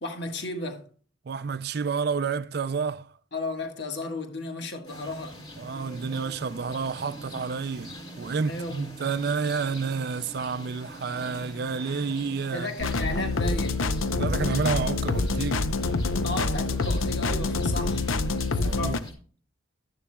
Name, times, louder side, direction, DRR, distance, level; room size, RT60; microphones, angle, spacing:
voice 1, 0.0-0.8 3.3-5.4 8.5-8.8 12.5-13.8 16.2-18.1 18.6-19.1, left 2 dB, 55° left, 1.6 m, -34 dB
voice 2, 1.3-3.1 5.6-12.7 14.2-15.7 18.6-19.0, right 5 dB, 50° right, 0.4 m, -30 dB
sound 1, 4.8-19.1, equal, 25° left, 2.6 m, -44 dB
sound 2, 12.8-19.0, left 3 dB, 85° left, 0.7 m, -26 dB
13.0 x 10.0 x 2.3 m
head